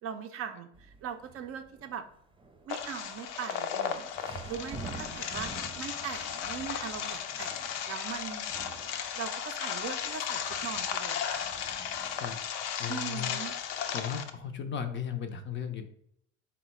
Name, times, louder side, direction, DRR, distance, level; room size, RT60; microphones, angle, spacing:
voice 1, 0.0-2.1 2.7-8.5 9.2-11.5 12.9-13.5, right 7 dB, 40° right, 7 dB, 0.5 m, -40 dB
sound 1, 0.7-14.6, right 4 dB, 15° right, 0.8 m, -50 dB
sound 2, 2.7-14.3, left 8 dB, 80° left, 0.6 m, -35 dB
voice 2, 12.8-13.5 13.9-15.9, left 8 dB, 35° left, 7 dB, 0.4 m, -36 dB
3.8 x 2.2 x 4.2 m, 0.69 s
supercardioid pair, 90°, 35 cm